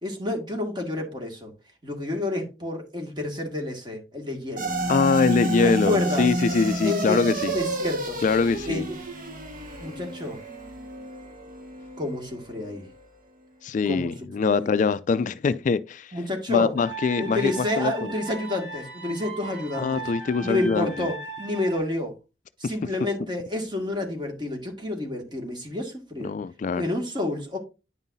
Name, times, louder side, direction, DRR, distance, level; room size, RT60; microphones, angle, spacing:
voice 1, 0.0-1.5 1.8-4.7 5.6-6.3 6.8-8.2 8.7-9.0 9.8-10.4 12.0-12.9 13.9-14.1 14.4-14.7 16.1-16.7 17.2-20.0 20.4-22.1 22.6-26.3 26.7-27.6, left 2 dB, 25° right, 1.9 m, -29 dB
sound 1, 4.6-13.1, right 2 dB, 50° right, 1.6 m, -30 dB
voice 2, 4.9-7.5 8.2-8.9 13.6-16.1 16.5-18.1 19.8-20.9 22.6-22.7 26.2-26.8, left 4 dB, 45° left, 0.3 m, -23 dB
sound 2, 16.8-21.8, right 4 dB, 80° right, 2.4 m, -38 dB
9.7 x 5.5 x 2.6 m
head